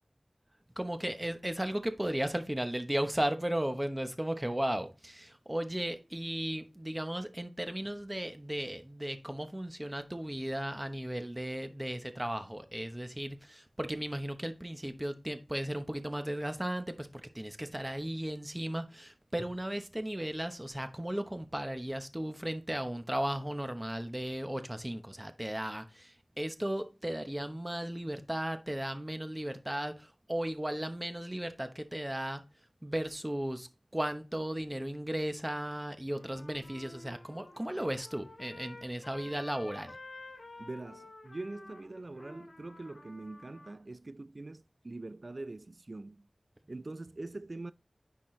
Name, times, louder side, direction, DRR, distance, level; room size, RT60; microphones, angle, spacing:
voice 1, 0.8-32.4 32.8-40.0, right 1 dB, 15° right, 0.9 m, -35 dB
Trumpet, 36.1-43.7, left 2 dB, 70° left, 2.2 m, -51 dB
voice 2, 40.6-46.2 46.7-47.7, right 2 dB, 50° right, 0.4 m, -43 dB
10.0 x 4.2 x 3.2 m
wide cardioid pair, 70°, 0 cm